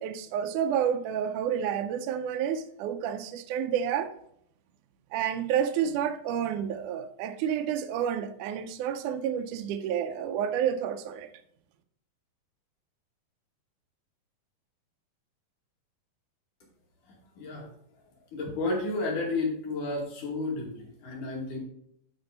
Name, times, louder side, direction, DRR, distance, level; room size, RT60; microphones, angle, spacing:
voice 1, 0.0-4.1 5.1-11.3, right 9 dB, 80° right, 1.9 m, -30 dB
voice 2, 17.4-17.7 18.3-21.6, left 2 dB, 60° left, 3.6 m, -31 dB
12.0 x 4.4 x 4.0 m
omnidirectional pair, 4.1 m